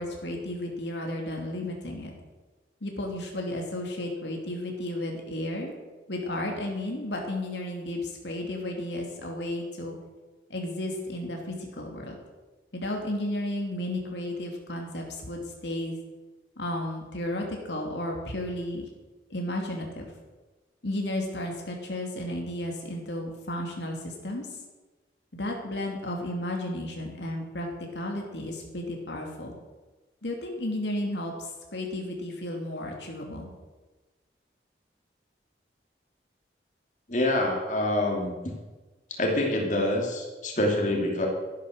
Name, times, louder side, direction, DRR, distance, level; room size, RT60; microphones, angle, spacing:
voice 1, 0.0-2.1 2.8-5.7 6.1-10.0 10.5-12.1 12.7-15.9 16.6-18.9 19.3-20.1 20.8-24.6 25.3-29.6 30.2-33.5, left 1 dB, 80° left, 1 dB, 2.7 m, -33 dB
voice 2, 37.1-38.3 39.1-41.3, left 1 dB, 45° left, 0 dB, 2.8 m, -26 dB
13.0 x 11.5 x 6.5 m, 1.2 s
head